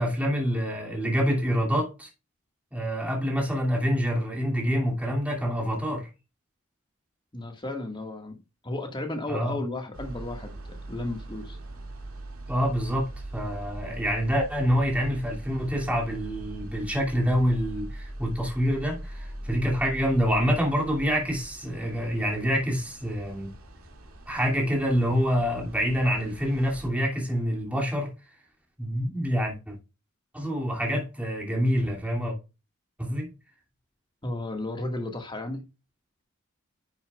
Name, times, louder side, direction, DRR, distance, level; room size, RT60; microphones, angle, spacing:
voice 1, 0.0-2.1 2.7-6.1 9.3-9.6 12.5-23.5 24.3-28.1 28.8-29.7 30.3-32.3 33.0-33.3, equal, 5° right, 2.6 m, -26 dB
voice 2, 7.3-8.3 8.6-10.5 10.9-11.6 34.2-35.6, left 2 dB, 20° left, 1.8 m, -33 dB
sound 1, 9.9-26.9, right 1 dB, 80° right, 2.4 m, -41 dB
10.5 x 6.9 x 2.4 m
head